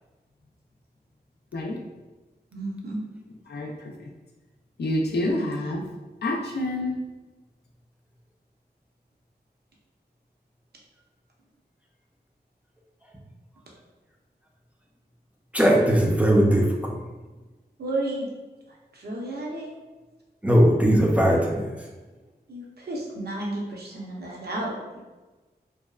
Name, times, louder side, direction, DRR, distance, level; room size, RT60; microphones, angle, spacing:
voice 1, 2.5-3.0 17.8-18.3 18.9-19.7 22.5-25.0, right 1 dB, 65° right, -3 dB, 0.7 m, -32 dB
voice 2, 3.5-4.1 4.8-5.8 6.2-7.0, left 1 dB, 70° left, 0 dB, 0.4 m, -28 dB
voice 3, 15.5-17.0 20.4-21.9, equal, 10° right, -2 dB, 0.4 m, -19 dB
2.7 x 2.3 x 2.3 m, 1.2 s
cardioid pair, 40°, 18 cm